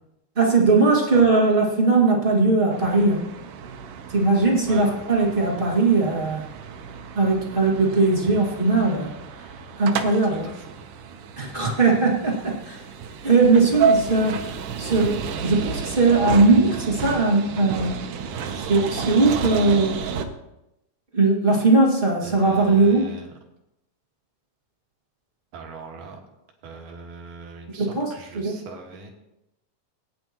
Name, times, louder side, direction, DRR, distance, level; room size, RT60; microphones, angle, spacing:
voice 1, 0.3-3.2 4.1-6.4 7.1-9.1 9.8-10.5 11.4-12.8 13.2-14.4 14.8-18.0 18.6-20.0 21.1-23.1 27.8-28.5, right 3 dB, 30° right, -3 dB, 1.0 m, -19 dB
sound 1, 2.7-20.2, right 6 dB, 70° right, 2.1 m, -31 dB
voice 2, 10.3-10.8 22.2-23.3 25.5-26.2 26.6-29.1, right 5 dB, 90° right, 0 dB, 3.6 m, -40 dB
19.5 x 9.8 x 3.0 m, 0.89 s
omnidirectional pair, 4.2 m